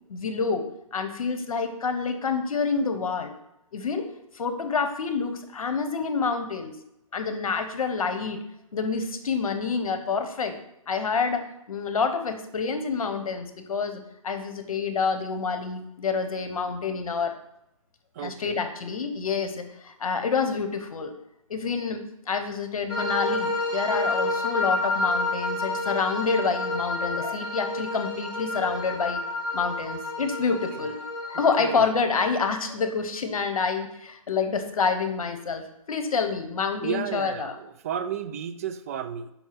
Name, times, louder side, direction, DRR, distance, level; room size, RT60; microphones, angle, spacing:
voice 1, 0.1-0.6 0.9-3.3 3.7-6.8 7.1-8.4 8.7-10.6 10.9-17.3 18.2-21.1 21.5-22.0 22.3-29.2 29.5-30.9 31.3-37.6, left 5 dB, 75° left, 8 dB, 1.0 m, -28 dB
voice 2, 18.1-18.7 30.5-30.8 31.3-31.9 36.8-39.3, right 8 dB, 25° right, 10 dB, 0.3 m, -33 dB
sound 1, 22.9-31.8, left 2 dB, 25° left, 2.2 m, -29 dB
5.4 x 4.5 x 5.8 m, 0.82 s
hypercardioid pair, 150°, 18 cm